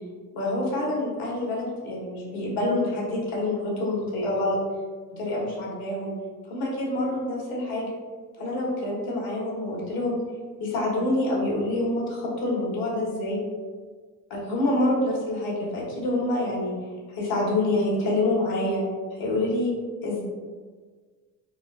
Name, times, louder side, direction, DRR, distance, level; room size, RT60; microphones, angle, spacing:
voice 1, 0.3-4.6 5.1-6.1 6.5-7.9 8.4-10.2 10.6-13.4 14.3-16.8 17.1-18.8 19.1-19.7 20.0-20.2, left 1 dB, 75° left, -4 dB, 1.3 m, -26 dB
4.5 x 2.2 x 2.4 m, 1.5 s
cardioid pair, 105°, 37 cm